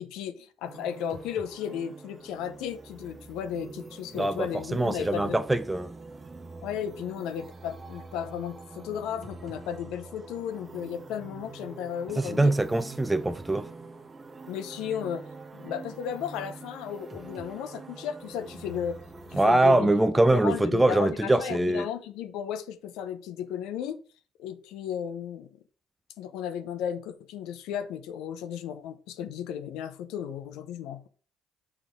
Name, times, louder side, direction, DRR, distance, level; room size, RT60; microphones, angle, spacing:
voice 1, 0.0-5.4 6.6-12.5 14.5-19.0 19.3-20.0 20.3-24.0 24.4-25.5 26.2-31.1, left 9 dB, 80° left, 0.7 m, -34 dB
sound 1, 0.6-19.5, right 3 dB, 30° right, 1.1 m, -45 dB
voice 2, 4.1-5.9 12.2-13.7 19.3-21.8, right 2 dB, 15° right, 0.5 m, -23 dB
6.9 x 3.7 x 4.9 m
hypercardioid pair, 60°, 0 cm